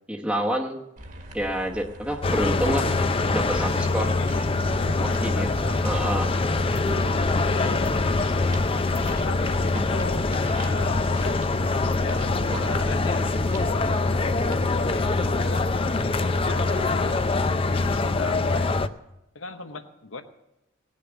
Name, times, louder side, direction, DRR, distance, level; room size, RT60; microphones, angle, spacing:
voice 1, 0.1-0.8 1.3-2.9 3.3-4.1 5.2-5.5 5.8-6.3, equal, 5° right, -2 dB, 1.0 m, -27 dB
sound 1, 1.0-14.7, right 1 dB, 40° right, 1.5 m, -41 dB
sound 2, 2.2-18.9, left 3 dB, 30° left, 0.5 m, -24 dB
voice 2, 3.9-4.4 5.1-5.8 6.4-6.5 7.2-8.5 9.2-11.7 12.0-13.3 13.7-16.1 16.4-18.9 19.3-20.2, left 4 dB, 80° left, 8 dB, 1.0 m, -38 dB
18.0 x 6.8 x 8.1 m, 0.88 s
head